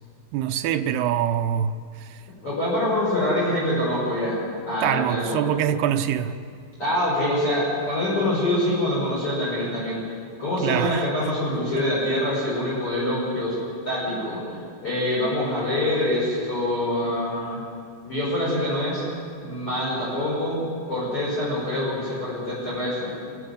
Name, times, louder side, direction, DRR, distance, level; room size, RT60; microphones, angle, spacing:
voice 1, 0.3-2.2 4.8-6.4 10.6-11.1, right 10 dB, 75° right, 2.5 m, -24 dB
voice 2, 2.4-4.4 4.7-5.4 6.8-10.0 10.4-13.6 13.8-17.6 18.0-19.0 19.4-23.1, left 1 dB, 30° left, 6.8 m, -25 dB
26.5 x 13.5 x 9.7 m
omnidirectional pair, 5.3 m